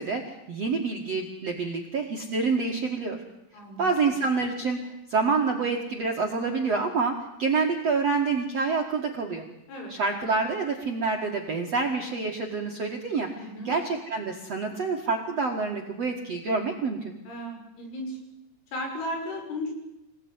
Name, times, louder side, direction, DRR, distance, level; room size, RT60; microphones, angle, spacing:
voice 1, 0.0-3.2 3.8-4.8 5.1-9.4 9.9-17.1, right 4 dB, 50° right, 1 dB, 2.0 m, -27 dB
voice 2, 3.5-3.8 9.7-9.9 13.4-13.7 17.3-18.2 18.7-19.7, left 1 dB, 70° left, 1 dB, 9.2 m, -35 dB
27.0 x 18.0 x 9.7 m, 0.91 s
omnidirectional pair, 5.6 m